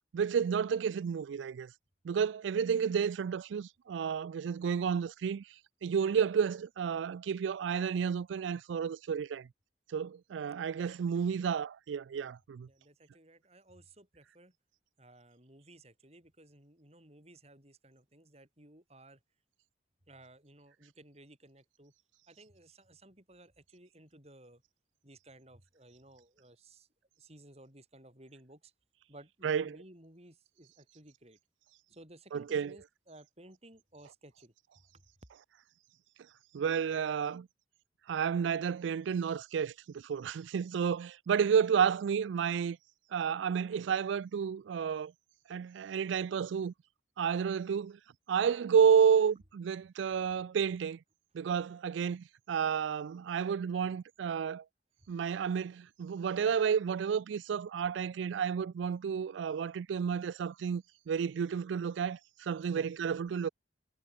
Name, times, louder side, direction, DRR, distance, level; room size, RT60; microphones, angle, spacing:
voice 1, 0.1-1.7 2.0-5.4 5.8-9.5 9.9-12.7 29.4-29.8 32.3-32.8 36.5-37.5 38.1-42.8 43.1-45.1 45.5-46.7 47.2-48.0 48.3-51.0 51.3-54.6 55.1-63.5, right 7 dB, 85° right, 0.3 m, -31 dB
voice 2, 10.7-11.4 12.6-14.5 15.0-19.2 20.1-21.9 22.3-24.6 25.0-26.9 27.2-28.7 29.1-31.4 31.9-34.5 55.0-55.1 62.7-62.9, right 1 dB, 35° right, 7.9 m, -57 dB
head